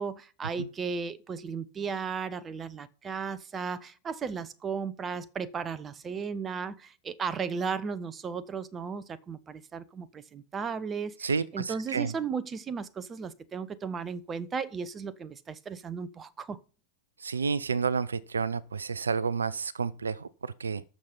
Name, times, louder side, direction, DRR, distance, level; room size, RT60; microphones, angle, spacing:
voice 1, 0.0-16.6, right 5 dB, 20° right, 0.8 m, -35 dB
voice 2, 11.2-12.1 17.2-20.8, right 5 dB, 75° right, 0.4 m, -30 dB
14.0 x 6.7 x 5.4 m
figure-of-eight pair, 90°, 0 cm